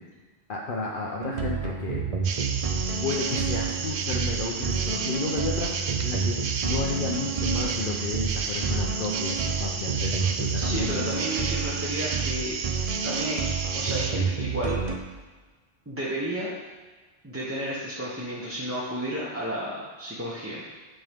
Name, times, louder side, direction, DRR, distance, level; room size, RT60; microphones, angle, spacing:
voice 1, 0.5-2.0 2.9-6.4 6.6-11.1, left 4 dB, 55° left, -2 dB, 0.8 m, -32 dB
sound 1, 1.2-15.0, right 5 dB, 40° right, 0.6 m, -30 dB
sound 2, 2.2-14.1, right 5 dB, 75° right, 0.9 m, -32 dB
voice 2, 10.5-12.5 13.0-14.8 15.9-16.5 17.2-20.6, equal, 15° right, -8 dB, 0.9 m, -32 dB
8.9 x 5.4 x 3.6 m, 1.3 s
omnidirectional pair, 1.1 m